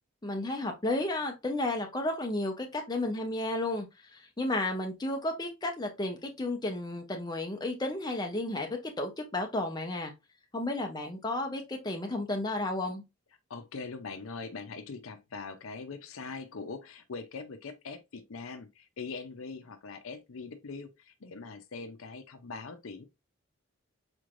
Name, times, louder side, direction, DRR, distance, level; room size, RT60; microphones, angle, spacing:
voice 1, 0.2-3.9 4.1-8.7 9.0-10.1 10.5-13.0, left 2 dB, 20° left, 0.7 m, -32 dB
voice 2, 13.5-23.0, left 4 dB, 75° left, 0.6 m, -42 dB
4.3 x 3.2 x 2.5 m
head